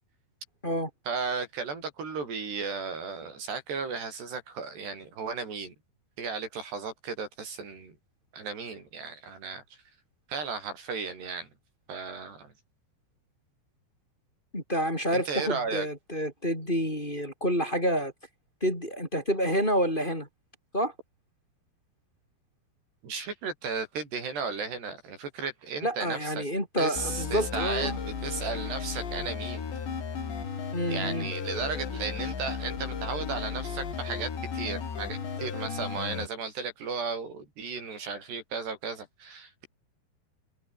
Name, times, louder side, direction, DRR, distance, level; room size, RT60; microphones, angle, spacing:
voice 1, 1.1-5.7 6.2-8.0 8.3-9.6 10.3-11.5 11.9-12.5 15.1-15.9 23.0-26.5 26.8-29.7 30.9-39.7, right 5 dB, 75° right, 8.5 m, -35 dB
voice 2, 14.5-18.1 18.6-20.3 20.7-20.9 25.8-28.0 30.7-31.3, equal, 10° left, 6.8 m, -28 dB
sound 1, 27.0-36.3, left 6 dB, 85° left, 7.4 m, -35 dB
omnidirectional pair, 4.8 m